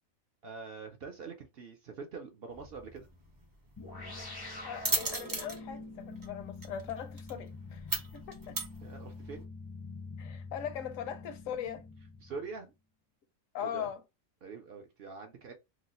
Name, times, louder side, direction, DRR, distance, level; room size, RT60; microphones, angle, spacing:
voice 1, 0.4-3.1 8.8-9.5 12.2-12.7 13.6-13.9 14.4-15.5, right 4 dB, 60° right, 0.7 m, -44 dB
sound 1, 2.5-9.4, right 2 dB, 35° right, 0.3 m, -38 dB
sound 2, 3.8-12.6, left 3 dB, 30° left, 0.4 m, -46 dB
voice 2, 4.6-8.6 10.2-11.8 13.5-14.0, left 9 dB, 75° left, 1.0 m, -40 dB
3.0 x 2.0 x 3.9 m
omnidirectional pair, 1.4 m